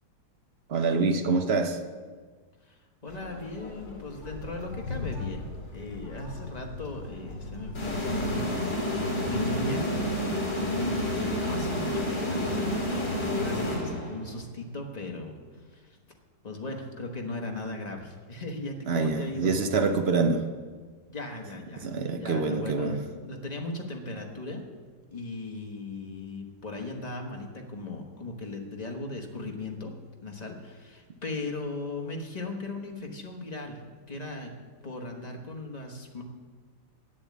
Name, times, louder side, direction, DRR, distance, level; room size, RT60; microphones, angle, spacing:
voice 1, 0.7-1.8 18.9-20.4 21.8-23.0, right 4 dB, 55° right, 0.7 m, -26 dB
voice 2, 2.7-5.4 5.7-8.7 8.9-9.9 10.5-16.0 16.4-19.5 21.1-21.9 22.2-24.6 25.1-29.9 30.2-33.8 34.1-34.5 34.8-36.2, left 2 dB, 25° left, 1.1 m, -37 dB
sound 1, 3.1-8.4, left 3 dB, 70° left, 2.9 m, -39 dB
sound 2, 7.7-14.4, left 1 dB, 40° left, 2.5 m, -29 dB
8.9 x 7.4 x 8.4 m
omnidirectional pair, 1.9 m